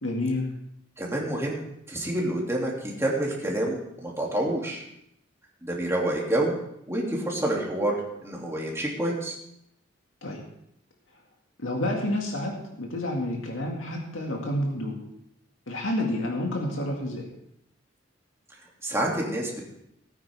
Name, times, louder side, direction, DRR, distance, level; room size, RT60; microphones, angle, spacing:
voice 1, 0.0-0.5 10.2-10.4 11.6-15.0 15.7-17.3, left 1 dB, 80° left, 0 dB, 2.1 m, -29 dB
voice 2, 1.0-1.6 1.9-4.8 5.6-6.6 6.9-9.4 18.8-19.6, right 1 dB, 15° right, -3 dB, 2.6 m, -28 dB
17.5 x 9.2 x 3.5 m, 0.77 s
head